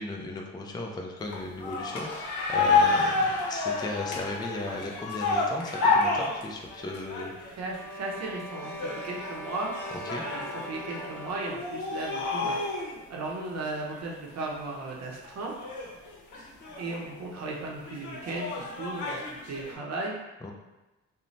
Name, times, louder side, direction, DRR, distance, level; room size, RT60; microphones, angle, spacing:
voice 1, 0.0-7.5 10.0-10.2 20.4-20.5, left 2 dB, 15° left, 1 dB, 0.4 m, -36 dB
sound 1, 1.3-7.8 8.5-13.0 13.5-13.6 13.9-14.0 14.7-15.0 15.4-17.1 17.8-19.7, left 3 dB, 75° left, 0.7 m, -29 dB
voice 2, 7.5-9.7 10.2-12.6 13.1-15.5 16.8-20.2, right 2 dB, 60° right, -2 dB, 0.7 m, -36 dB
sound 2, 7.6-11.8, right 1 dB, 40° left, 1.1 m, -41 dB
2.6 x 2.1 x 3.1 m, 1.1 s
cardioid pair, 90°, 30 cm